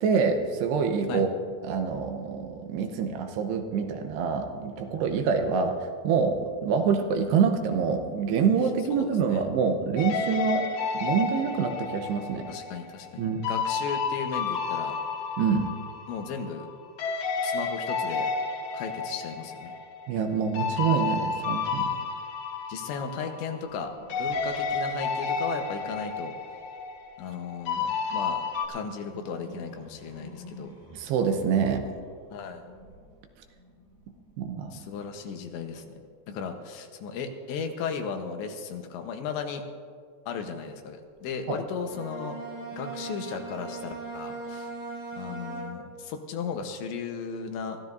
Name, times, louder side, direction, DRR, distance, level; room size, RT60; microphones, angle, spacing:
voice 1, 0.0-1.3 1.6-10.6 10.9-12.5 13.2-13.5 15.4-15.7 20.1-21.9 30.9-31.9 34.4-34.7 41.5-41.6, right 6 dB, 80° right, 5 dB, 2.8 m, -26 dB
voice 2, 8.9-9.4 12.5-15.0 16.1-16.7 17.4-18.3 18.7-19.7 22.7-23.9 24.2-26.4 27.2-30.8 32.3-32.6 34.7-36.0 36.3-39.6 40.3-42.4 42.7-44.7 45.2-47.8, left 6 dB, 85° left, 5 dB, 3.4 m, -35 dB
sound 1, 10.0-16.7 17.0-23.8 24.1-28.7, left 5 dB, 55° left, 2.5 m, -31 dB
sound 2, 23.6-27.7 28.2-36.1 40.9-41.4, left 2 dB, 5° left, 2.3 m, -51 dB
Bowed string instrument, 41.8-46.1, right 3 dB, 45° right, 4.7 m, -39 dB
23.5 x 15.0 x 2.7 m, 2.2 s
omnidirectional pair, 5.0 m